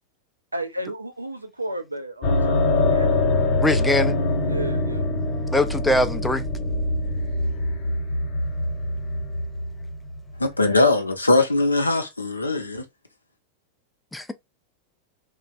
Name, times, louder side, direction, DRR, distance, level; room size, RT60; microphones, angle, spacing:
voice 1, 0.5-3.2 4.4-5.1, right 1 dB, 85° right, 0.5 m, -33 dB
sound 1, 2.2-10.6, left 2 dB, 35° left, 1.0 m, -24 dB
voice 2, 3.6-4.2 5.5-6.5 14.1-14.3, left 1 dB, 5° left, 0.4 m, -22 dB
voice 3, 10.4-12.8, left 2 dB, 80° left, 0.6 m, -20 dB
3.2 x 2.2 x 2.5 m
figure-of-eight pair, 90°, 0 cm